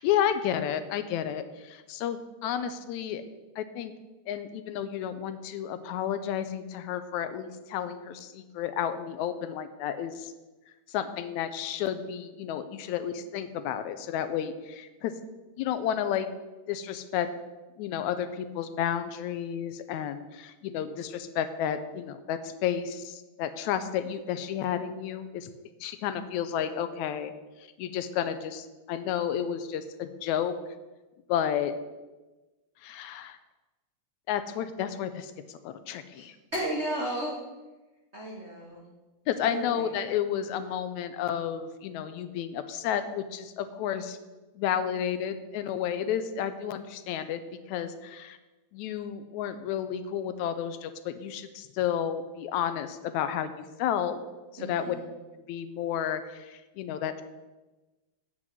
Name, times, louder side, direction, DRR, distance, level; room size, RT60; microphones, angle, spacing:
voice 1, 0.0-3.2 3.6-3.9 4.3-10.3 10.9-15.1 15.6-16.3 16.7-17.3 17.8-25.5 25.8-27.3 27.8-30.6 31.3-31.7 32.8-33.4 34.3-36.4 39.3-44.2 44.6-47.4 47.7-48.4 48.7-54.2 54.5-55.0 55.5-57.2, left 9 dB, 85° left, 11 dB, 2.0 m, -31 dB
voice 2, 36.5-37.4 38.1-38.8 39.5-39.9 54.6-55.0, right 1 dB, 60° right, -2 dB, 0.6 m, -34 dB
8.0 x 6.1 x 7.4 m, 1.1 s
omnidirectional pair, 3.4 m